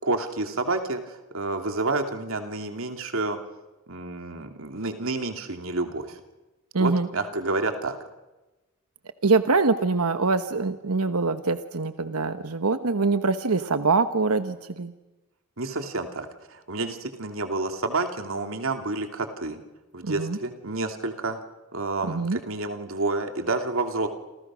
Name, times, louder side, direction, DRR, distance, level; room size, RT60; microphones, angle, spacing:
voice 1, 0.0-3.4 3.9-6.2 6.8-8.0 15.6-19.6 19.9-21.4 21.7-24.1, right 2 dB, 65° right, 6 dB, 2.7 m, -29 dB
voice 2, 6.7-7.1 9.2-14.9 20.0-20.4 22.1-22.4, right 4 dB, 90° right, 10 dB, 1.2 m, -24 dB
28.5 x 28.5 x 6.3 m, 1.1 s
head